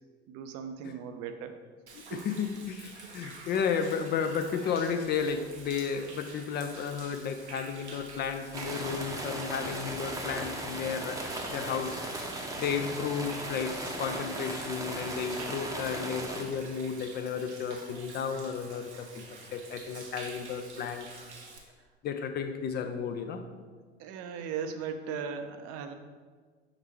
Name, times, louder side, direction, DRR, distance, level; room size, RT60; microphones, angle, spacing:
voice 1, 0.3-1.5 2.1-2.2 24.0-25.9, right 6 dB, 45° right, 7 dB, 0.6 m, -37 dB
Human voice / Rain / Stream, 1.9-21.6, right 3 dB, 80° right, 0.9 m, -48 dB
voice 2, 2.1-12.0 12.6-21.1 22.0-23.4, left 6 dB, 30° left, 7 dB, 0.4 m, -33 dB
sound 1, 8.5-16.4, right 1 dB, 10° right, 0.8 m, -37 dB
5.4 x 3.9 x 4.6 m, 1.5 s
figure-of-eight pair, 65°, 33 cm